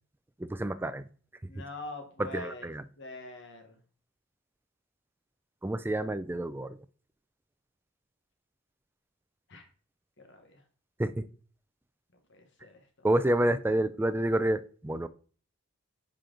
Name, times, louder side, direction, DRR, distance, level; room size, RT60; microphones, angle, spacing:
voice 1, 0.4-1.0 2.3-2.8 5.6-6.8 11.0-11.3 13.0-15.1, right 1 dB, 10° right, 12 dB, 0.3 m, -28 dB
voice 2, 1.5-2.7 3.0-3.8 9.5-9.7 10.2-10.6 12.3-13.1, left 2 dB, 55° left, 6 dB, 1.2 m, -44 dB
10.0 x 4.5 x 3.8 m, 0.42 s
head